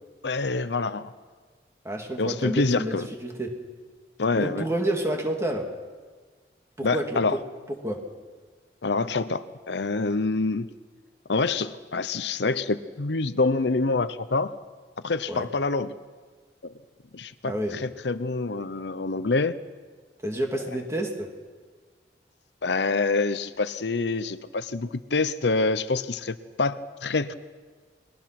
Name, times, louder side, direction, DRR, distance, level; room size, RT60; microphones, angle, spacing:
voice 1, 0.2-1.1 2.2-3.0 4.2-4.7 6.8-7.4 8.8-10.7 11.3-14.5 15.0-15.9 16.6-16.7 17.1-19.6 22.6-27.3, left 3 dB, 80° left, 13 dB, 0.8 m, -26 dB
voice 2, 1.8-3.6 4.4-5.7 6.8-7.4 7.8-8.0 15.3-15.5 17.4-17.8 20.2-21.3, right 1 dB, 15° right, 2 dB, 2.5 m, -29 dB
29.0 x 21.0 x 6.0 m, 1.5 s
head